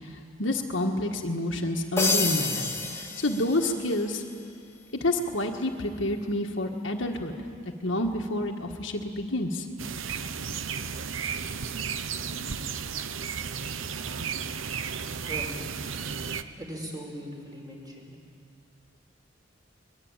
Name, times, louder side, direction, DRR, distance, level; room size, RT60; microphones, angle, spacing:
voice 1, 0.4-4.2 5.0-7.3 7.8-9.7, left 1 dB, 70° left, 2 dB, 1.7 m, -28 dB
sound 1, 2.0-4.0, left 3 dB, 15° left, 2.2 m, -29 dB
sound 2, 9.8-16.4, right 6 dB, 85° right, 0.9 m, -33 dB
voice 2, 16.6-18.2, equal, 20° right, -1 dB, 5.5 m, -39 dB
23.0 x 22.0 x 9.0 m, 2.3 s
head